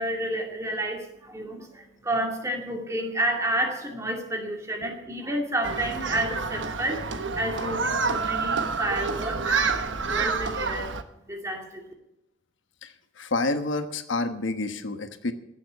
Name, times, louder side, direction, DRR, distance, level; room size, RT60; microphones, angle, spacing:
voice 1, 0.0-10.9 11.3-11.9, right 1 dB, 15° right, 1 dB, 2.5 m, -30 dB
Human group actions, 5.6-11.0, right 4 dB, 75° right, 1.2 m, -28 dB
voice 2, 12.8-15.3, left 2 dB, 80° left, 9 dB, 1.2 m, -29 dB
16.5 x 7.3 x 9.3 m, 0.86 s
head